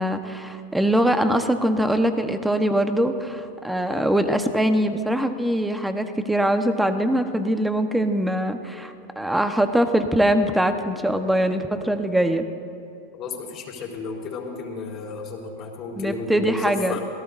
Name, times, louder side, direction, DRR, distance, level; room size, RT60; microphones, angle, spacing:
voice 1, 0.0-12.5 16.0-17.0, right 1 dB, 5° right, 7 dB, 1.2 m, -22 dB
voice 2, 13.1-17.0, left 4 dB, 40° left, -2 dB, 4.2 m, -33 dB
27.5 x 18.0 x 2.7 m, 2.8 s
hypercardioid pair, 95°, 0 cm